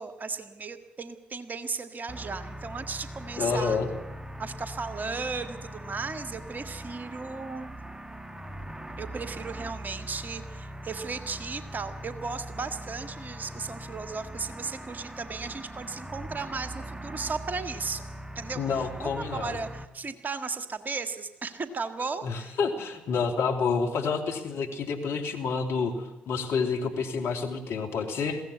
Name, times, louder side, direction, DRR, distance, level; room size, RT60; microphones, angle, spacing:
voice 1, 0.0-3.8 4.4-7.8 9.0-18.1 18.4-22.6, right 4 dB, 40° right, 9 dB, 1.9 m, -35 dB
sound 1, 2.1-19.9, right 1 dB, 15° right, 1.4 m, -41 dB
voice 2, 3.4-3.9 18.6-19.6 22.2-28.4, left 5 dB, 60° left, 3 dB, 2.8 m, -29 dB
22.0 x 16.5 x 8.4 m, 1.0 s
hypercardioid pair, 45°, 5 cm